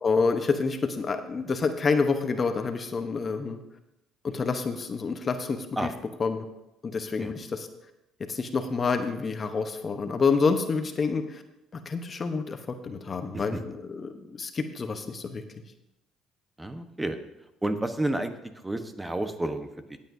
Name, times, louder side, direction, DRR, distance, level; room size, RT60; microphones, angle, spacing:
voice 1, 0.0-3.6 4.2-5.9 6.2-6.5 6.8-7.7 8.2-11.4 11.7-15.6, left 4 dB, 40° left, 7 dB, 0.9 m, -28 dB
voice 2, 16.6-17.2 17.6-18.3 18.6-20.0, right 1 dB, 15° right, 8 dB, 1.1 m, -30 dB
17.0 x 8.4 x 2.7 m, 0.90 s
supercardioid pair, 70°, 0 cm